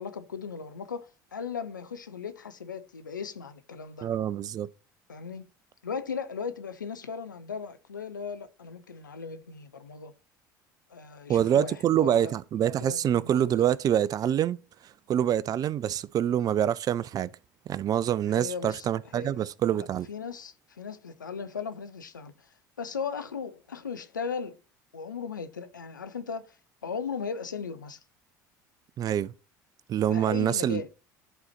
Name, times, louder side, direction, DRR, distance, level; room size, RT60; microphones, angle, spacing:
voice 1, 0.0-4.1 5.1-5.4 5.8-10.1 10.9-12.3 12.6-13.5 18.3-18.9 19.1-19.5 19.7-22.5 22.8-24.6 24.9-26.6 26.8-28.0 30.1-30.9, left 6 dB, 90° left, 0.5 m, -37 dB
voice 2, 4.0-4.7 11.3-14.6 15.1-17.3 17.7-20.1 29.0-29.3 29.9-30.8, right 10 dB, 40° right, 0.4 m, -26 dB
11.0 x 4.0 x 3.0 m
figure-of-eight pair, 65°, 10 cm